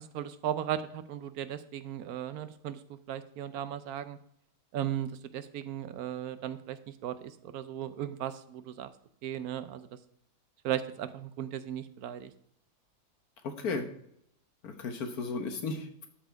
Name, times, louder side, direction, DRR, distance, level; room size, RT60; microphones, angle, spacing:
voice 1, 0.0-2.8 3.1-4.2 4.7-8.9 9.2-9.9 10.6-12.3, right 10 dB, 75° right, 12 dB, 1.1 m, -36 dB
voice 2, 13.4-13.9 14.6-16.1, left 4 dB, 75° left, 6 dB, 1.7 m, -35 dB
12.5 x 4.2 x 4.6 m, 0.71 s
omnidirectional pair, 1.6 m